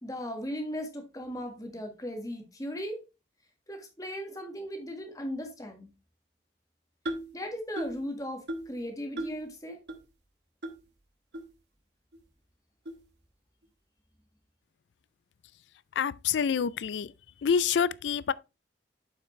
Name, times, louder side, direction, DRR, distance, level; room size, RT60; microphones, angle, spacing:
voice 1, 0.0-3.0 3.7-5.9 7.3-9.8, equal, 20° left, 1.6 m, -37 dB
sound 1, 7.0-7.4 7.8-8.0 8.5-8.8 9.2-9.4 9.9-10.0 10.6-10.7 11.3-11.4 12.1-12.2 12.8-13.0, right 1 dB, 80° right, 1.1 m, -36 dB
voice 2, 15.9-17.1 17.4-18.3, left 7 dB, 85° left, 0.4 m, -27 dB
7.3 x 5.8 x 3.1 m
head